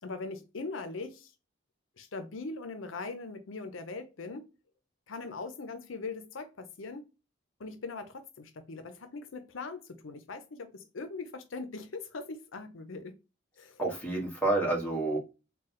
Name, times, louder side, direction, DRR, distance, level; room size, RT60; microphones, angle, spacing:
voice 1, 0.0-1.3 2.0-4.5 5.1-7.1 7.6-13.2 13.6-13.8, left 3 dB, 80° left, 0.6 m, -41 dB
voice 2, 13.8-15.2, right 2 dB, 10° left, 1.2 m, -29 dB
3.7 x 2.3 x 4.1 m
head